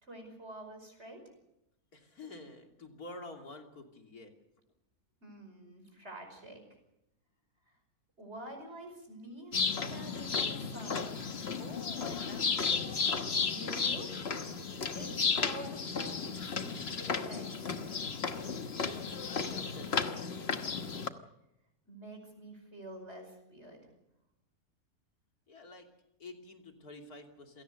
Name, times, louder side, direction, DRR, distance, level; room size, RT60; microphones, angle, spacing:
voice 1, 0.0-1.3 5.2-6.6 8.2-11.1 13.5-14.1 14.9-17.7 21.8-23.9, right 1 dB, 45° right, 4 dB, 5.6 m, -47 dB
voice 2, 1.9-4.3 11.6-12.9 19.3-20.9 25.5-27.6, left 3 dB, 80° left, 3 dB, 3.5 m, -49 dB
sound 1, 9.5-21.1, left 5 dB, 45° left, 1.4 m, -34 dB
27.5 x 17.5 x 6.7 m, 0.85 s
omnidirectional pair, 1.6 m